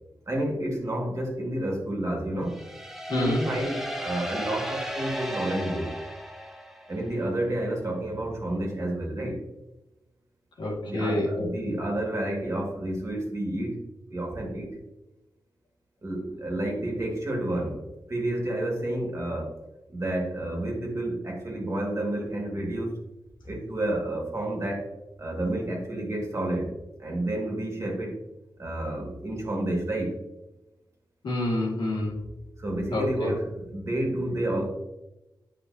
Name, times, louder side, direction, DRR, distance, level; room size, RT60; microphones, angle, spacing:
voice 1, 0.3-2.6 3.1-5.9 6.9-9.4 10.9-14.8 16.0-19.6 19.9-23.0 23.5-24.9 25.2-28.2 28.6-30.2 32.6-34.7, right 1 dB, 40° right, 0 dB, 1.9 m, -30 dB
sound 1, 2.5-7.2, equal, 5° right, 0.7 m, -35 dB
voice 2, 3.1-3.5 10.6-11.5 31.2-32.2 32.9-33.3, left 1 dB, 90° left, -3 dB, 2.0 m, -27 dB
8.5 x 5.2 x 2.7 m, 0.98 s
wide cardioid pair, 95°, 8 cm